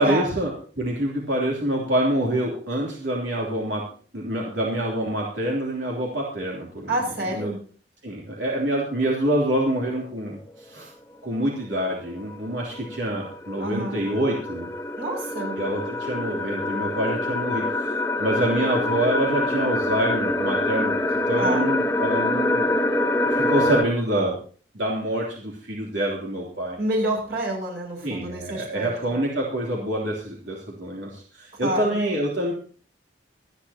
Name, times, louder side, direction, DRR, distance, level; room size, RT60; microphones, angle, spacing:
voice 1, 0.0-3.9 4.1-6.9 7.3-7.5 8.0-10.9 11.2-14.7 15.6-20.9 21.3-22.7 23.3-24.4 24.7-26.8 28.0-32.5, right 1 dB, 90° right, -2 dB, 3.2 m, -26 dB
voice 2, 6.9-7.6 13.6-14.0 15.0-15.6 18.4-18.8 21.4-21.7 26.8-29.2 31.6-32.0, right 1 dB, 60° right, 0 dB, 6.5 m, -28 dB
sound 1, 10.4-10.5 12.0-23.8, left 2 dB, 15° left, 1.2 m, -26 dB
25.5 x 10.0 x 2.9 m, 0.42 s
head